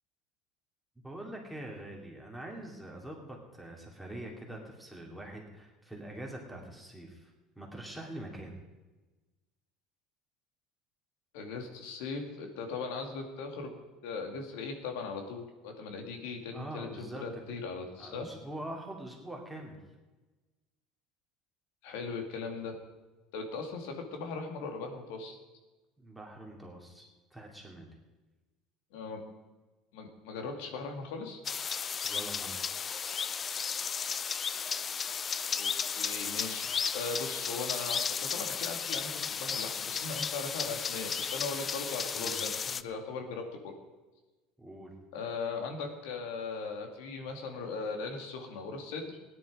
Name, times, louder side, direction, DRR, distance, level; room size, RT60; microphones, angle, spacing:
voice 1, 1.0-7.3 7.6-8.5 16.5-17.4 18.0-19.8 26.0-27.9 32.0-32.6 42.1-42.4 44.6-44.9, right 1 dB, ahead, -1 dB, 2.7 m, -44 dB
voice 2, 11.3-13.7 14.0-18.3 21.8-22.7 23.3-25.4 28.9-29.2 29.9-31.4 35.6-36.7 36.9-43.4 45.1-49.2, left 4 dB, 85° left, 4 dB, 2.3 m, -39 dB
sound 1, 31.4-42.8, left 6 dB, 25° left, 0.4 m, -34 dB
16.5 x 10.5 x 4.9 m, 1.2 s
cardioid pair, 145°, 0 cm